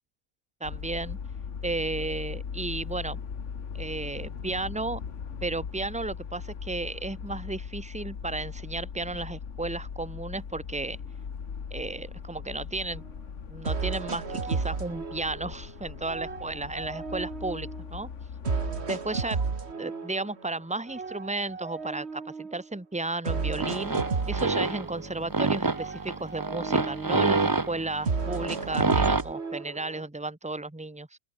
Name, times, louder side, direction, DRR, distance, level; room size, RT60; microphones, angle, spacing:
sound 1, 0.6-18.8, left 6 dB, 55° left, 1.7 m, -39 dB
voice 1, 0.6-1.2 1.6-3.2 3.7-5.0 5.4-11.0 11.7-13.0 13.5-18.1 18.9-19.4 19.8-23.9 24.3-31.2, right 2 dB, 5° right, 1.3 m, -33 dB
sound 2, 13.0-13.1 13.6-15.7 16.1-17.9 18.4-20.4 20.9-22.6 23.2-25.4 25.7-27.4 28.0-30.0, right 4 dB, 50° right, 2.2 m, -33 dB
sound 3, 23.3-29.2, right 3 dB, 20° right, 0.6 m, -28 dB
open air
omnidirectional pair, 1.5 m